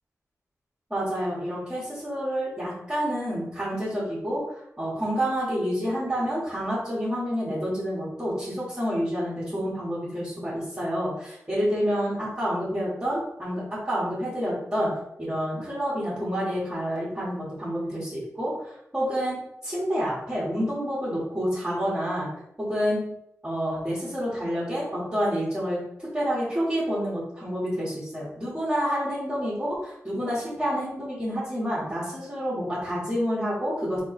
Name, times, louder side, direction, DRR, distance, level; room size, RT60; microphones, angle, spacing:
voice 1, 0.9-14.9 15.2-22.3 22.6-23.0 23.4-34.0, equal, 15° right, -10 dB, 1.6 m, -28 dB
4.0 x 2.9 x 4.3 m, 0.78 s
wide cardioid pair, 130°, 6 cm